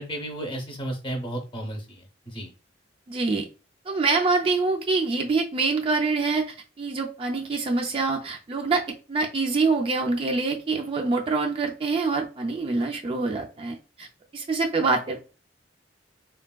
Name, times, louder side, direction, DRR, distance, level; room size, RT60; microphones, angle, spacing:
voice 1, 0.0-2.5, right 1 dB, 25° left, 3 dB, 0.7 m, -33 dB
voice 2, 3.1-3.5 3.9-14.1 14.3-15.2, right 3 dB, 30° right, 2 dB, 0.3 m, -25 dB
3.4 x 2.2 x 2.2 m, 0.34 s
head